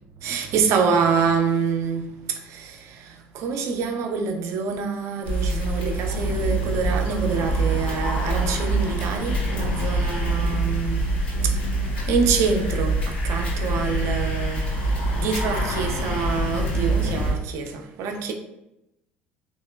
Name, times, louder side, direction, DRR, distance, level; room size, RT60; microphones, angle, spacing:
voice 1, 0.2-11.2 11.4-11.5 12.1-14.7 15.2-18.3, right 5 dB, 55° right, 0.5 m, -26 dB
sound 1, 5.2-17.3, right 1 dB, 80° left, 1.2 m, -25 dB
3.5 x 3.0 x 2.2 m
hypercardioid pair, 60°, 6 cm